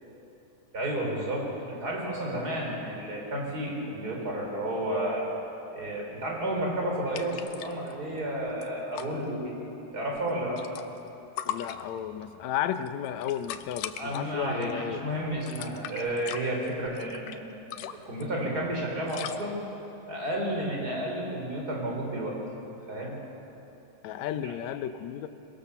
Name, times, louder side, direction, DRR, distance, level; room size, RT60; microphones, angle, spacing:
voice 1, 0.7-5.3 5.7-9.6 9.9-10.7 14.0-17.4 17.7-19.6 20.1-22.4 22.9-23.2 24.4-24.5, right 1 dB, 25° right, -1 dB, 4.5 m, -32 dB
sound 1, 7.1-7.9 8.2-8.3 8.5-9.1 10.1-11.1 11.4-12.2 12.7-14.2 14.6-14.9 15.3-17.4 17.7-18.2 19.1-19.4, left 11 dB, 85° left, 2.5 m, -39 dB
voice 2, 11.5-15.0 24.0-25.3, left 10 dB, 70° left, 10 dB, 1.9 m, -33 dB
23.0 x 22.0 x 6.9 m, 2.9 s
omnidirectional pair, 3.8 m